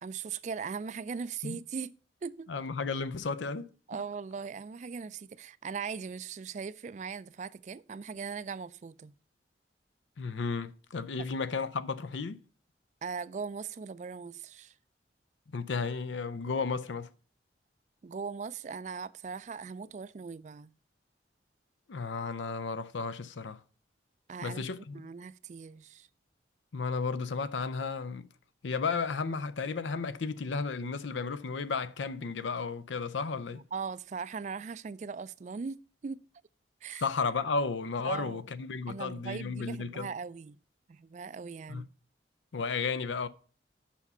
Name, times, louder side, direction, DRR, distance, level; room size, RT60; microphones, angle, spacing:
voice 1, 0.0-1.9 2.2-2.5 3.9-9.1 11.2-11.3 13.0-14.7 18.0-20.7 24.3-24.6 24.9-26.1 33.5-36.2 36.8-37.1 38.0-38.4 38.9-40.6 40.9-41.9, right 5 dB, 40° right, 0.3 m, -39 dB
voice 2, 2.5-3.7 10.2-12.4 15.5-17.1 21.9-23.6 24.4-25.1 26.7-28.3 28.6-33.6 37.0-40.1 41.7-41.8 42.5-43.3, left 4 dB, 85° left, 0.6 m, -33 dB
7.2 x 5.6 x 5.4 m
head